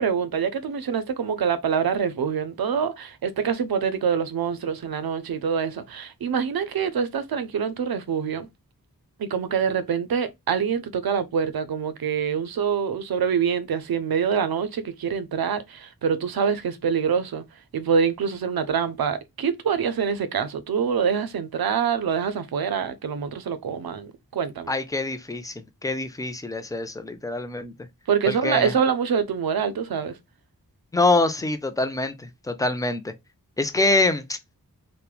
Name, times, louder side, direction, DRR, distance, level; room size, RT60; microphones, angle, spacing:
voice 1, 0.0-8.5 9.2-17.4 17.7-24.7 28.1-30.1, right 7 dB, 80° right, 0.5 m, -25 dB
voice 2, 24.7-25.5 25.8-27.7 28.3-28.7 30.9-33.1 33.6-34.4, left 2 dB, 10° left, 0.4 m, -25 dB
3.0 x 2.1 x 2.3 m
wide cardioid pair, 55°, 36 cm